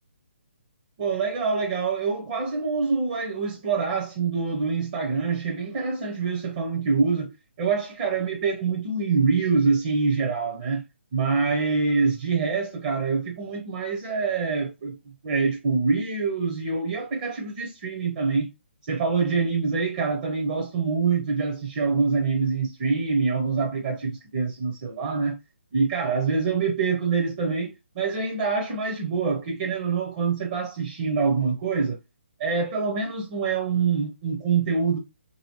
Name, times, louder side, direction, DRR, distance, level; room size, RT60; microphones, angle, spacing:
voice 1, 1.0-10.8 11.1-18.5 18.8-25.4 25.7-32.0 32.4-35.0, right 4 dB, 35° right, 0.6 m, -25 dB
2.9 x 2.8 x 2.9 m
hypercardioid pair, 150°, 6 cm